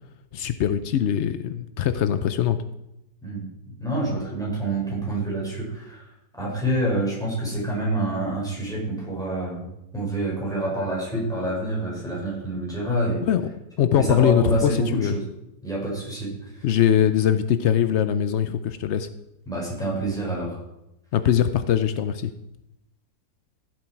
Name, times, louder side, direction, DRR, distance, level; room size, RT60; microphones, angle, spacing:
voice 1, 0.3-2.6 13.2-13.4 13.8-15.2 16.6-19.1 21.1-22.3, left 9 dB, 85° left, 11 dB, 0.6 m, -22 dB
voice 2, 3.8-6.0 6.4-9.7 9.9-13.2 13.9-15.2 15.6-16.6 19.5-20.6, right 1 dB, ahead, -5 dB, 5.4 m, -27 dB
15.0 x 7.7 x 4.6 m, 0.87 s
omnidirectional pair, 1.9 m